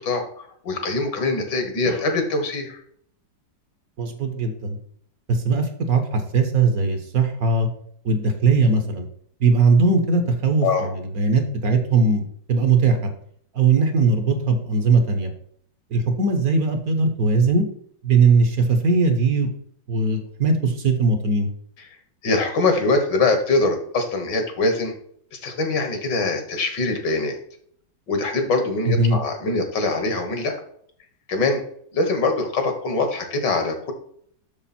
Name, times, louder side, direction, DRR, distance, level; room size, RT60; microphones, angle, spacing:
voice 1, 0.0-2.8 10.6-10.9 21.8-21.9 22.2-24.9 25.3-27.4 28.1-30.6 31.3-31.6 31.9-33.9, left 3 dB, 70° left, 6 dB, 2.1 m, -23 dB
voice 2, 4.0-4.8 5.3-7.7 8.0-9.1 9.4-13.1 13.5-15.3 15.9-17.7 18.0-19.5 19.9-21.5 28.9-29.2, right 4 dB, 55° right, 6 dB, 1.4 m, -19 dB
7.1 x 6.6 x 4.3 m, 0.63 s
omnidirectional pair, 1.9 m